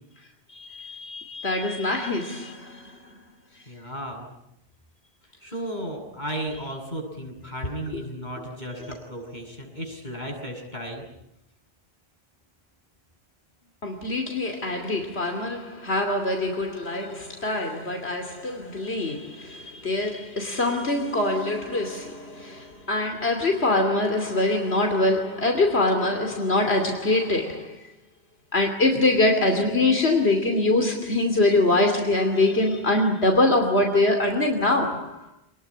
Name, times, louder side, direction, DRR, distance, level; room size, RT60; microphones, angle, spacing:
voice 1, 0.5-3.0 13.8-27.9 28.5-35.3, left 2 dB, 80° left, 3.0 m, -24 dB
voice 2, 3.7-4.3 5.4-11.0, right 1 dB, 45° left, 7.9 m, -34 dB
27.5 x 20.5 x 9.9 m
omnidirectional pair, 1.1 m